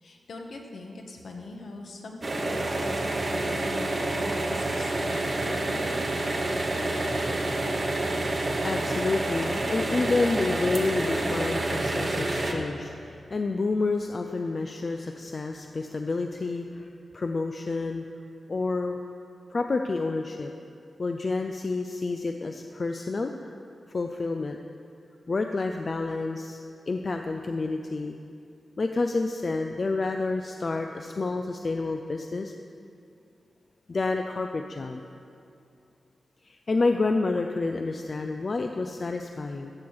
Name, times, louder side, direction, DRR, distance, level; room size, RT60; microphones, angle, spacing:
voice 1, 0.0-6.0, left 2 dB, 60° left, 2 dB, 1.2 m, -42 dB
sound 1, 2.2-12.5, right 2 dB, 35° right, 0.9 m, -28 dB
voice 2, 8.3-16.9 17.1-18.0 18.5-19.0 19.5-20.5 21.0-23.5 23.9-24.6 25.3-26.6 26.9-28.2 28.8-32.5 33.9-35.0 36.4-39.7, left 3 dB, 35° left, 5 dB, 0.4 m, -29 dB
14.0 x 4.7 x 7.2 m, 2.5 s
wide cardioid pair, 175°, 0 cm